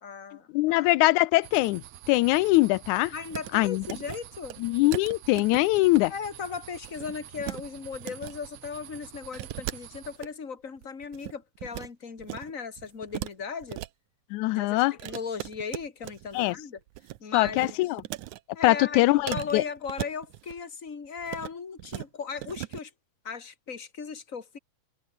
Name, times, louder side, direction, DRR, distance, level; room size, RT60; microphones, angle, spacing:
voice 1, 0.0-0.9 3.1-4.6 6.1-13.8 14.5-16.8 17.2-17.8 18.5-22.9 23.2-24.6, left 6 dB, 25° left, 2.7 m, -37 dB
voice 2, 0.5-3.1 3.5-3.8 4.6-6.1 14.3-15.0 16.3-16.6 17.3-18.0 18.6-19.6, left 20 dB, 85° left, 2.0 m, -22 dB
sound 1, 1.4-10.2, right 12 dB, 65° right, 2.1 m, -47 dB
sound 2, 3.3-3.5 3.8-4.2 4.5-4.6 4.9-6.0 6.3-6.5 6.8-7.6 7.9-8.3 9.3-10.3 10.8-11.9 12.2-12.5 12.8-13.9 15.0-16.5 16.8-17.2 17.4-18.4 19.3-20.6 21.2-21.5 21.8-22.1 22.4-22.8, right 16 dB, 80° right, 2.2 m, -38 dB
omnidirectional pair, 3.4 m